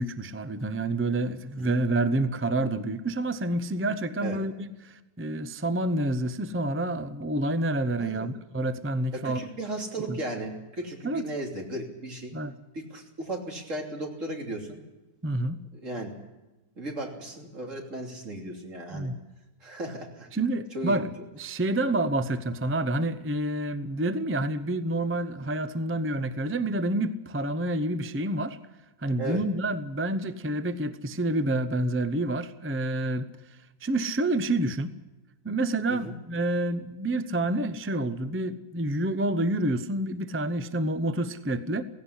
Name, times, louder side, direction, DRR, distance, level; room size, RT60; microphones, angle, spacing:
voice 1, 0.0-4.5 4.8-9.4 10.1-10.2 11.0-11.3 12.3-12.5 15.2-15.6 18.9-19.2 20.3-21.1 21.4-28.6 29.0-33.3 33.8-34.9 35.4-41.8, right 1 dB, 15° right, 12 dB, 0.4 m, -28 dB
voice 2, 8.0-8.3 9.1-12.3 12.7-14.8 15.7-16.1 16.8-19.1 19.6-20.3 20.7-21.1 29.2-29.4 35.9-36.1, right 1 dB, 55° right, 1 dB, 3.5 m, -35 dB
17.0 x 17.0 x 9.9 m, 1.1 s
omnidirectional pair, 1.6 m